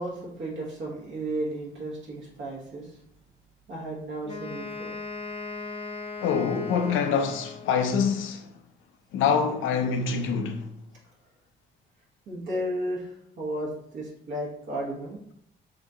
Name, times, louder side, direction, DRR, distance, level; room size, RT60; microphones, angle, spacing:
voice 1, 0.0-3.0 3.7-5.0 12.3-15.2, right 1 dB, 70° right, 1.0 m, -34 dB
Wind instrument woodwind instrument, 4.2-8.0, left 4 dB, 25° left, 0.6 m, -38 dB
voice 2, 6.2-8.5 9.1-10.7, left 6 dB, 85° left, 0.5 m, -25 dB
2.9 x 2.7 x 3.5 m
cardioid pair, 90°, 20 cm